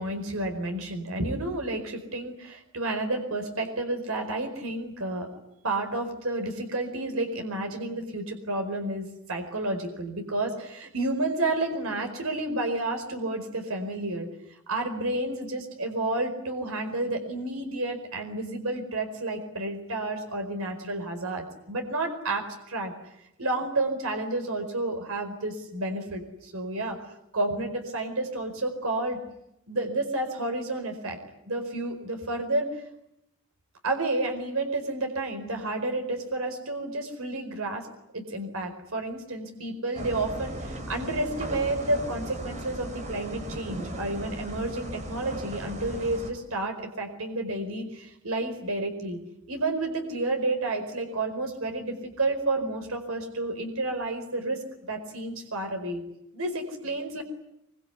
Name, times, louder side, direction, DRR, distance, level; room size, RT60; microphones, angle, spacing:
voice 1, 0.0-5.4 5.6-14.3 14.7-22.9 23.4-27.0 27.3-29.2 29.7-31.2 31.5-32.8 33.8-37.9 38.1-49.2 49.5-54.6 54.9-56.0 56.3-57.2, right 2 dB, 75° right, 5 dB, 4.7 m, -30 dB
sound 1, 39.9-46.3, right 1 dB, 35° right, 4.1 m, -37 dB
24.5 x 24.5 x 9.6 m, 0.81 s
head